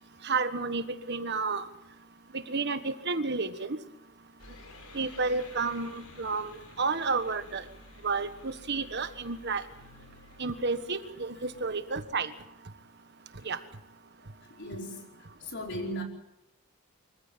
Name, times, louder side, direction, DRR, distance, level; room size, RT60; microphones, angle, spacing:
voice 1, 0.2-1.7 2.3-3.8 4.9-7.6 8.0-9.6 10.4-12.3 13.4-13.6, right 4 dB, 50° right, 10 dB, 1.4 m, -31 dB
sound 1, 4.4-11.8, left 2 dB, 85° left, 4.9 m, -52 dB
voice 2, 14.6-15.1 15.4-16.0, equal, 50° left, 1 dB, 4.8 m, -36 dB
25.0 x 15.0 x 8.8 m, 0.87 s
head